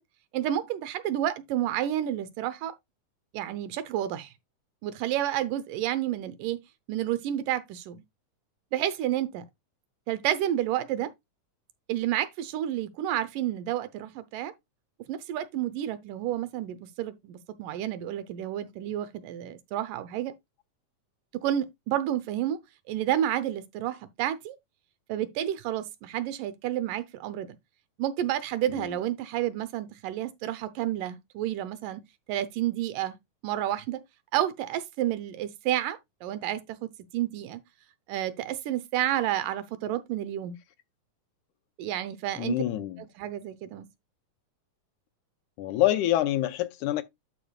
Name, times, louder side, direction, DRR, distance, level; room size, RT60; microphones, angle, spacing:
voice 1, 0.3-2.7 3.3-4.3 4.8-6.6 6.9-8.0 8.7-9.5 10.1-11.1 11.9-14.5 15.1-20.3 21.3-22.6 22.9-24.6 25.1-27.6 28.0-32.0 32.3-33.2 33.4-34.0 34.3-37.6 38.1-40.6 41.8-42.6 43.2-43.9, right 12 dB, 85° right, 2.5 m, -30 dB
voice 2, 42.4-43.0 45.6-47.0, left 14 dB, 80° left, 2.1 m, -26 dB
12.0 x 5.1 x 2.3 m
omnidirectional pair, 3.7 m